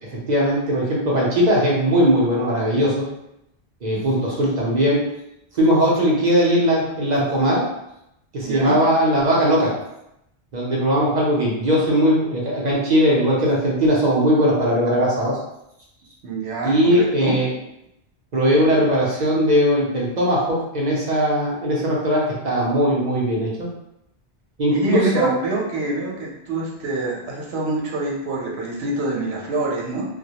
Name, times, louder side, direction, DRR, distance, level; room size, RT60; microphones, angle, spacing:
voice 1, 0.1-3.1 3.8-5.0 5.5-7.7 8.3-9.7 10.5-15.4 16.6-17.5 18.3-23.7 24.6-25.3, equal, 50° right, -5 dB, 0.7 m, -19 dB
voice 2, 8.4-8.8 16.2-17.3 24.7-30.1, right 2 dB, 80° right, -4 dB, 0.9 m, -26 dB
2.3 x 2.0 x 2.8 m, 0.83 s
omnidirectional pair, 1.1 m